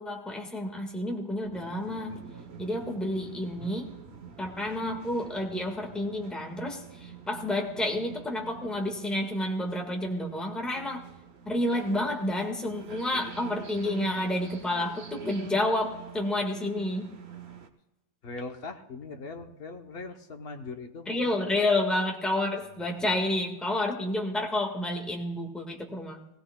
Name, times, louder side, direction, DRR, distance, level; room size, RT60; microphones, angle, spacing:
voice 1, 0.0-2.1 2.6-3.9 4.4-11.0 11.5-17.1 21.1-26.2, left 1 dB, ahead, 2 dB, 1.2 m, -30 dB
sound 1, 1.5-17.7, right 6 dB, 45° right, 0.9 m, -46 dB
voice 2, 18.2-21.5 23.0-23.2, left 3 dB, 55° left, 5 dB, 0.7 m, -41 dB
20.0 x 16.5 x 2.2 m, 0.92 s
omnidirectional pair, 2.1 m